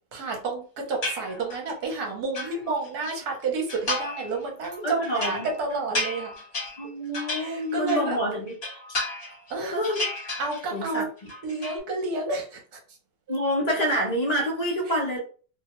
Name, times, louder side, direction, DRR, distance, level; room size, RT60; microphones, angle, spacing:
voice 1, 0.1-6.4 7.4-8.2 9.3-9.8 10.4-11.1 11.4-12.8 13.3-13.4, right 3 dB, 65° right, 1 dB, 1.3 m, -30 dB
sound 1, 1.0-1.7 2.1-3.2 3.7-4.3 4.6-8.2 8.5-9.5 9.8-10.9 11.2-11.8, left 2 dB, 35° left, 1.5 m, -33 dB
voice 2, 4.8-5.5 6.8-8.5 9.7-10.0 10.7-11.0 13.3-15.2, equal, 50° left, -2 dB, 0.4 m, -27 dB
3.0 x 2.3 x 2.9 m, 0.40 s
omnidirectional pair, 1.9 m